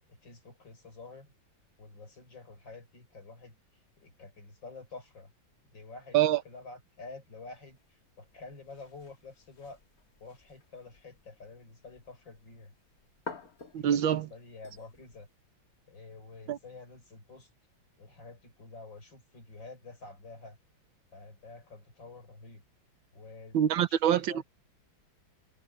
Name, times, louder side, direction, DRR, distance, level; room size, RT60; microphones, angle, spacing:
voice 1, 0.1-1.3 1.8-3.6 4.0-5.3 5.6-9.8 10.2-12.7 13.8-15.3 15.9-17.5 18.0-20.6 21.1-22.6 23.1-24.4, left 3 dB, 65° left, 7.0 m, -49 dB
sound 1, 7.5-15.3, left 3 dB, 45° left, 2.4 m, -51 dB
voice 2, 13.7-14.3 16.5-16.6 23.5-24.4, right 10 dB, 75° right, 1.7 m, -25 dB
omnidirectional pair, 2.2 m